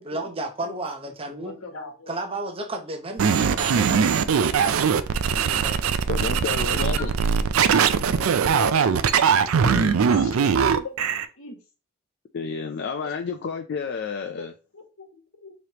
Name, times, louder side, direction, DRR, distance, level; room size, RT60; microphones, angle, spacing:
voice 1, 0.0-1.6 2.1-4.1 5.6-5.9 6.8-7.0, right 2 dB, 30° right, 0.7 m, -33 dB
voice 2, 1.4-2.1 6.8-7.1 7.9-8.9 9.7-10.3 10.7-10.9 11.4-11.6 13.0-13.1 14.7-15.5, left 3 dB, 85° left, 1.1 m, -39 dB
sound 1, 3.2-11.2, right 6 dB, 85° right, 0.4 m, -21 dB
voice 3, 6.1-7.1 9.6-10.0 12.3-14.5, left 5 dB, 55° left, 0.4 m, -30 dB
4.9 x 3.0 x 2.9 m
head